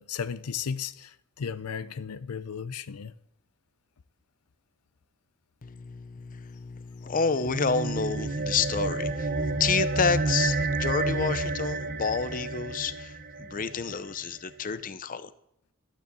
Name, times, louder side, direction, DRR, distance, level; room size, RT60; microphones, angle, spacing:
voice 1, 0.0-3.1, left 6 dB, 90° left, 0.5 m, -35 dB
voice 2, 5.6-15.3, left 5 dB, 40° left, 0.6 m, -29 dB
sound 1, 7.3-14.0, right 3 dB, 45° right, 0.8 m, -30 dB
12.0 x 9.3 x 6.9 m
head